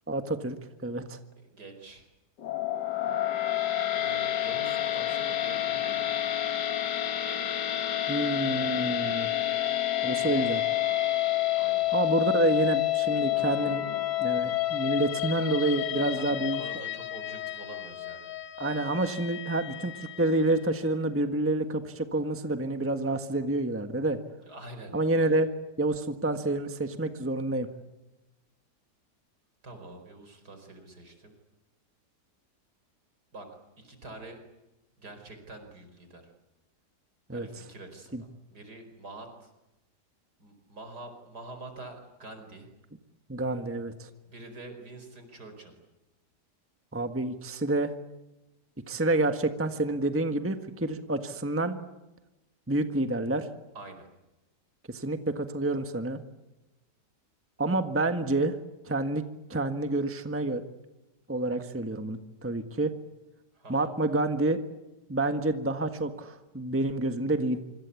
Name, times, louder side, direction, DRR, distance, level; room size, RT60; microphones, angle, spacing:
voice 1, 0.1-0.6 0.8-1.2 8.1-9.3 10.0-10.6 11.9-13.8 14.2-16.8 18.6-24.2 24.9-25.5 25.8-27.7 37.3-37.5 38.1-38.2 43.3-44.1 46.9-47.9 48.9-51.8 52.7-53.5 54.9-56.2 57.6-58.6 58.8-59.2 59.5-60.6 61.3-62.9 63.7-64.6 65.1-67.6, right 2 dB, 10° right, 8 dB, 1.4 m, -28 dB
voice 2, 1.4-2.1 3.9-6.1 11.6-11.9 15.9-18.3 24.5-24.9 25.3-25.4 29.6-31.4 33.3-33.5 33.8-34.4 35.0-36.3 37.3-39.5 40.4-42.7 44.3-45.7 53.8-54.1 63.5-63.9, right 2 dB, 70° right, 6 dB, 5.3 m, -46 dB
sound 1, 2.4-20.6, left 13 dB, 90° left, 1.9 m, -29 dB
26.0 x 25.5 x 8.4 m, 1.0 s
omnidirectional pair, 1.8 m